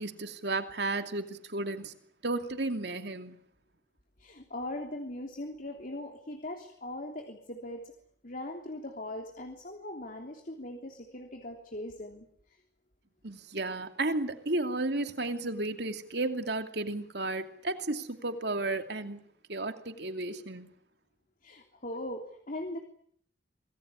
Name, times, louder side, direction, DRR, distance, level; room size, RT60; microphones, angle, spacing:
voice 1, 0.0-1.9 2.2-3.4 13.2-19.2 19.5-20.7, right 2 dB, 65° right, 2.7 m, -33 dB
voice 2, 4.2-7.9 8.2-12.3 21.4-22.8, left 1 dB, 50° left, 3.3 m, -40 dB
26.5 x 20.5 x 9.9 m
head